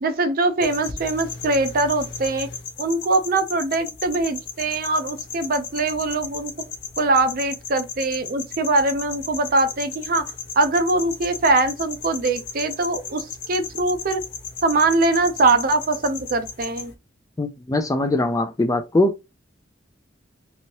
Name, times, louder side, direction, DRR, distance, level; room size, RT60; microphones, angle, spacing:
voice 1, 0.0-2.5 2.8-6.5 7.0-10.3 10.6-14.2 14.6-16.9, right 2 dB, 50° right, 0.5 m, -22 dB
sound 1, 0.6-16.9, left 6 dB, 60° left, 0.6 m, -35 dB
voice 2, 17.4-19.1, left 2 dB, 15° left, 0.3 m, -21 dB
3.0 x 2.7 x 2.8 m
head